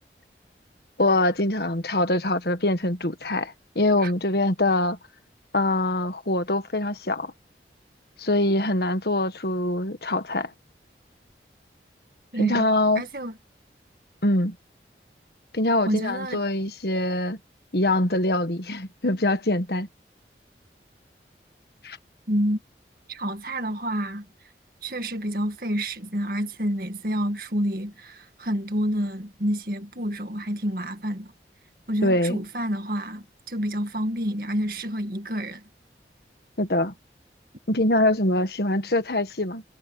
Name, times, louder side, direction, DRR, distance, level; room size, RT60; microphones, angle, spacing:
voice 1, 1.0-5.0 5.5-7.3 8.2-10.5 12.4-13.0 14.2-14.5 15.5-17.4 17.7-19.9 21.8-22.0 32.0-32.4 36.6-36.9 37.7-39.6, left 1 dB, 65° left, 1.6 m, -24 dB
voice 2, 12.3-12.6 13.0-13.4 15.9-16.4 22.3-22.6 23.1-24.3 24.8-31.3 31.9-35.6, equal, 55° right, 2.0 m, -28 dB
head